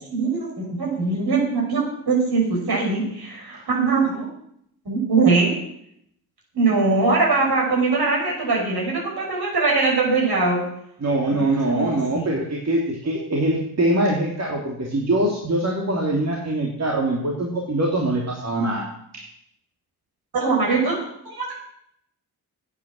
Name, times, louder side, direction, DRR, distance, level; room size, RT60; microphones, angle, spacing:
voice 1, 0.1-4.3 4.8-5.6 6.5-10.6 11.3-12.4 20.3-21.5, right 3 dB, 55° right, -2 dB, 6.1 m, -22 dB
voice 2, 11.0-18.8 19.1-19.3, right 1 dB, 35° right, -1 dB, 2.8 m, -23 dB
9.2 x 8.8 x 7.6 m, 0.74 s
hypercardioid pair, 45°, 46 cm